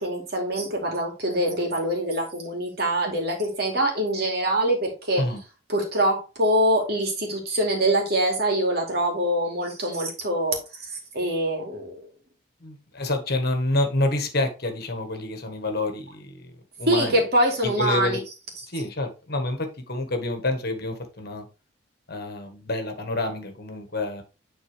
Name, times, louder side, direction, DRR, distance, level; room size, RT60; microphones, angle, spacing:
voice 1, 0.0-5.3 5.7-10.6 11.1-12.1 16.9-18.2, right 1 dB, 50° right, 1 dB, 2.5 m, -24 dB
voice 2, 12.6-16.5 16.8-17.2 17.6-18.2 18.7-21.5 22.1-24.2, left 2 dB, 50° left, 5 dB, 1.5 m, -28 dB
9.9 x 4.0 x 3.4 m, 0.31 s
head